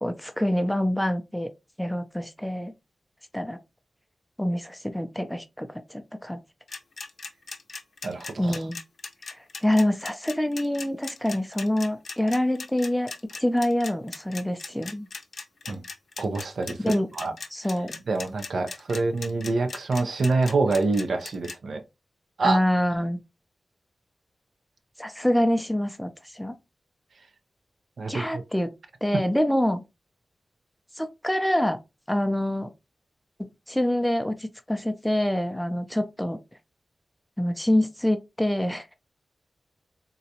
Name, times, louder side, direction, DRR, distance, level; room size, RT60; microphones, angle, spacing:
voice 1, 0.0-1.5 1.8-2.7 3.3-3.6 4.4-6.4 8.4-8.8 9.6-13.1 13.4-15.1 16.8-17.1 17.5-17.9 22.4-23.2 25.0-26.6 28.1-28.7 29.0-29.8 31.0-31.8 32.1-32.7 33.4-36.4 37.4-38.9, left 1 dB, 5° left, 0.5 m, -26 dB
sound 1, 6.7-21.5, left 4 dB, 70° left, 0.6 m, -38 dB
voice 2, 8.0-8.6 15.7-15.8 16.2-16.8 17.1-17.3 18.1-21.8 22.4-22.6 28.0-28.4, right 3 dB, 75° right, 0.5 m, -26 dB
3.8 x 2.2 x 2.8 m
wide cardioid pair, 105°, 0 cm